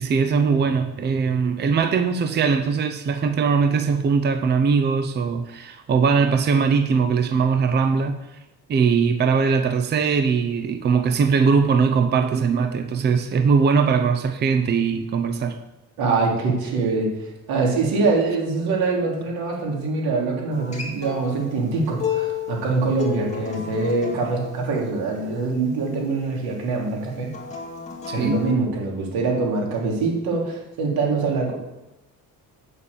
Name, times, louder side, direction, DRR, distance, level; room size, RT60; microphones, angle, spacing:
voice 1, 0.0-8.2 8.7-15.6 28.1-28.4, right 5 dB, 30° right, 7 dB, 0.7 m, -20 dB
voice 2, 16.0-17.1 17.5-27.3 28.1-31.5, right 3 dB, 90° right, -2 dB, 3.5 m, -24 dB
Acoustic guitar, 20.5-25.7 27.3-28.5, left 7 dB, 20° left, 2.2 m, -32 dB
8.9 x 6.9 x 7.1 m, 0.97 s
cardioid pair, 155°, 36 cm